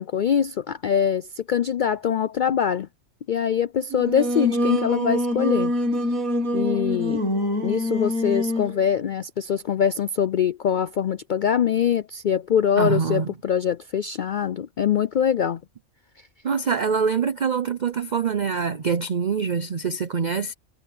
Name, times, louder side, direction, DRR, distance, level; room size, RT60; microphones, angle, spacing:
voice 1, 0.0-2.9 3.3-5.7 6.5-7.2 7.6-15.6, left 8 dB, 85° left, 0.4 m, -23 dB
Singing, 3.9-8.8, left 1 dB, 90° right, 2.6 m, -25 dB
voice 2, 12.8-13.3 16.4-20.5, right 6 dB, 45° right, 0.6 m, -24 dB
omnidirectional pair, 1.4 m